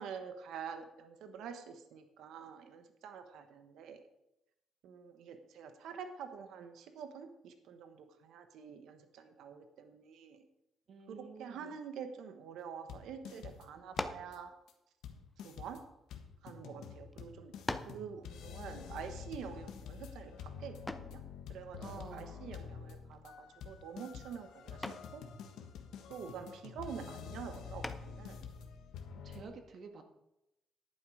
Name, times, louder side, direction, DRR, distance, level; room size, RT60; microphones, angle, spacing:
voice 1, 0.0-4.0 4.8-10.4 11.1-14.5 15.4-15.8 16.4-17.5 17.8-21.2 21.5-21.8 22.1-25.2 26.1-28.5, right 7 dB, 80° right, 7 dB, 1.2 m, -47 dB
voice 2, 10.9-11.8 21.7-22.5 29.1-30.0, right 4 dB, 55° right, 5 dB, 1.8 m, -50 dB
sound 1, 12.9-13.7 14.0-14.4 14.7-14.8 15.0-29.4, left 7 dB, 85° left, 1.4 m, -48 dB
sound 2, 13.9-14.4 15.3-16.5 17.1-17.2 17.7-18.1 20.9-21.2 23.1-23.5 23.9-24.2 24.8-25.2 27.8-28.3, left 1 dB, 10° left, 0.8 m, -41 dB
11.0 x 9.1 x 5.0 m, 0.88 s
cardioid pair, 90°, 0 cm